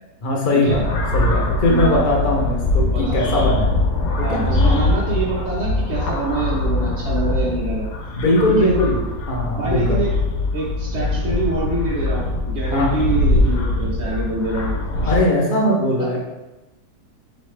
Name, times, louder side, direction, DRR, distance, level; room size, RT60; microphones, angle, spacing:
voice 1, 0.2-0.8 1.1-3.8 4.2-4.4 8.1-10.0 12.7-12.9 15.0-16.2, left 1 dB, 45° left, -2 dB, 0.7 m, -20 dB
sound 1, 0.7-15.2, left 2 dB, 85° left, 1.3 m, -22 dB
voice 2, 1.7-2.1 2.9-3.2 4.2-7.9 8.6-8.7 9.6-10.1 10.5-14.7 15.0-15.1 16.0-16.2, right 3 dB, 30° right, -7 dB, 0.9 m, -25 dB
4.1 x 3.2 x 3.2 m, 1.0 s
omnidirectional pair, 1.7 m